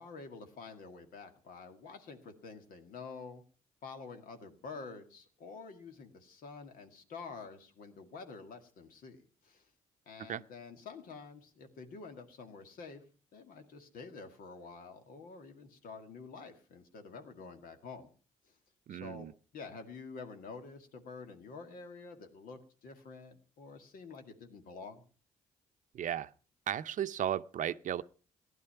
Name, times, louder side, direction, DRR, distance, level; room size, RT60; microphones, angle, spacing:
voice 1, 0.0-3.4 3.8-9.7 10.1-13.0 13.3-18.1 18.4-18.5 18.9-25.0, left 4 dB, 75° left, 2.0 m, -48 dB
voice 2, 18.9-19.3 25.9-26.3 26.7-28.0, right 10 dB, 60° right, 0.6 m, -35 dB
15.5 x 11.0 x 5.7 m
supercardioid pair, 70°, 15 cm